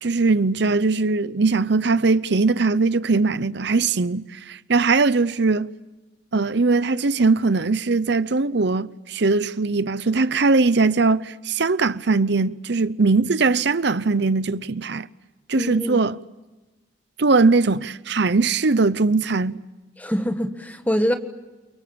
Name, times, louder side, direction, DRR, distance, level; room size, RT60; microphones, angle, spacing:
voice 1, 0.0-5.7 6.3-15.1 15.5-16.2 17.2-19.6, right 3 dB, 60° right, 0.8 m, -20 dB
voice 2, 15.5-16.0 20.0-21.1, equal, 10° left, 1.5 m, -24 dB
29.5 x 23.5 x 7.0 m
head